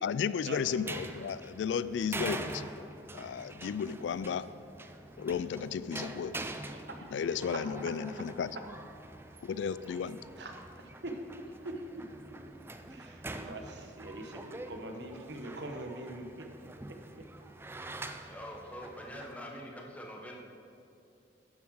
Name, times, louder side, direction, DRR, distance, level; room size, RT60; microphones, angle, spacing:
voice 1, 0.0-4.5 5.2-6.5 7.1-8.6 9.4-10.2, left 7 dB, 85° left, 16 dB, 0.3 m, -34 dB
sound 1, 0.6-19.4, right 2 dB, 15° right, 0.4 m, -45 dB
voice 2, 6.7-7.1 10.4-10.5 11.0-11.1 11.6-11.7 12.9-16.2, right 2 dB, 70° right, 4 dB, 1.2 m, -43 dB
voice 3, 18.3-20.4, equal, 10° left, 0 dB, 1.1 m, -44 dB
12.0 x 7.1 x 4.8 m, 2.6 s
head